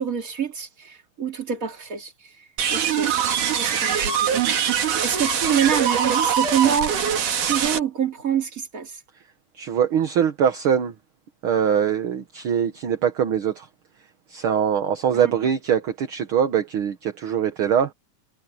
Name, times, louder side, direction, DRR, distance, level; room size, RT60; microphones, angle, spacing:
voice 1, 0.0-2.3 2.7-3.2 3.5-4.7 5.0-7.0 7.3-9.0 15.1-15.3, right 8 dB, 30° right, 2.8 m, -26 dB
sound 1, 2.6-7.8, right 8 dB, 85° right, 3.7 m, -23 dB
voice 2, 9.5-10.9 11.4-13.7 14.3-17.9, right 8 dB, 50° right, 1.8 m, -22 dB
omnidirectional pair, 3.5 m